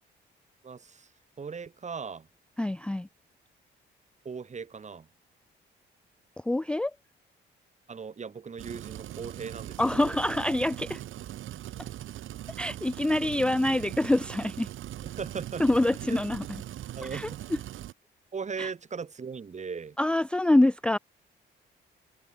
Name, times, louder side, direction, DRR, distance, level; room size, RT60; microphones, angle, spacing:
voice 1, 0.6-1.1 1.4-2.3 4.2-5.1 7.9-10.1 15.0-15.6 16.1-16.2 17.0-17.4 18.3-20.0, right 5 dB, 35° right, 2.3 m, -38 dB
voice 2, 2.6-3.1 6.5-6.9 9.8-11.0 12.6-14.7 15.6-16.5 17.1-17.3 18.6-18.7 20.0-21.0, left 1 dB, 5° left, 0.4 m, -25 dB
sound 1, 8.6-17.9, right 13 dB, 80° right, 6.5 m, -40 dB
cardioid pair, 90°, 20 cm